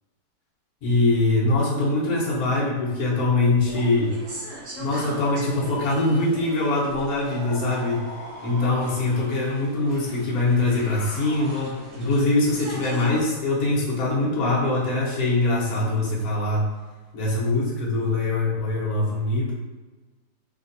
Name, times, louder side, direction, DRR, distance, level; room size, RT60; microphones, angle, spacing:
voice 1, 0.8-4.1 4.8-8.1 8.4-16.7 17.1-19.6, left 2 dB, 75° left, -5 dB, 0.8 m, -23 dB
sound 1, 3.6-13.1, right 1 dB, 70° right, 1.7 m, -42 dB
sound 2, 7.2-9.6 10.3-12.0, equal, 45° right, 1.5 m, -41 dB
3.3 x 2.7 x 2.6 m, 1.3 s
omnidirectional pair, 2.4 m